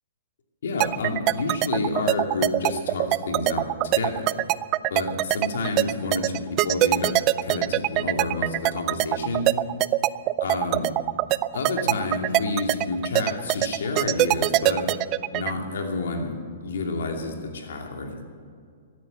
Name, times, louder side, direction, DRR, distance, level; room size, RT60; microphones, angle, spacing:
voice 1, 0.6-4.3 4.9-7.1 7.4-9.5 10.4-10.9 11.5-14.9 15.3-16.3 16.6-18.2, left 3 dB, 80° left, 2 dB, 2.6 m, -29 dB
sound 1, 0.8-15.5, right 17 dB, 30° right, 0.3 m, -22 dB
15.0 x 9.5 x 8.7 m, 2.2 s
hypercardioid pair, 145°, 0 cm